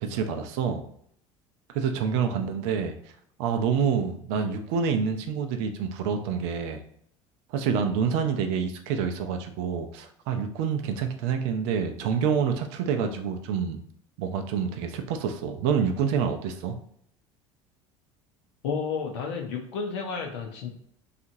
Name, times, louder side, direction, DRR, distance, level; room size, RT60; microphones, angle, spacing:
voice 1, 0.0-0.8 1.7-2.9 3.4-6.8 7.5-13.8 14.2-16.8, right 6 dB, 65° right, 6 dB, 0.5 m, -27 dB
voice 2, 18.6-20.8, left 5 dB, 75° left, 1 dB, 0.5 m, -31 dB
2.8 x 2.4 x 2.6 m, 0.65 s
hypercardioid pair, 70°, 16 cm